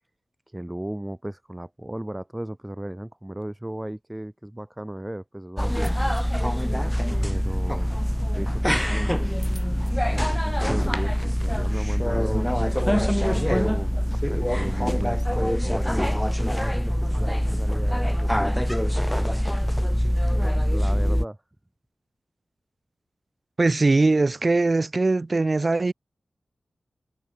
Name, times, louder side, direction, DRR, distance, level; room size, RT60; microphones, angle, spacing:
voice 1, 0.5-6.1 7.2-7.9 8.3-9.1 10.1-12.5 13.3-18.7 20.7-21.4, right 1 dB, 10° right, 3.0 m, -35 dB
sound 1, 5.6-21.2, equal, 5° left, 2.0 m, -24 dB
voice 2, 23.6-25.9, right 3 dB, 35° right, 0.7 m, -21 dB
wide cardioid pair, 80°, 0 cm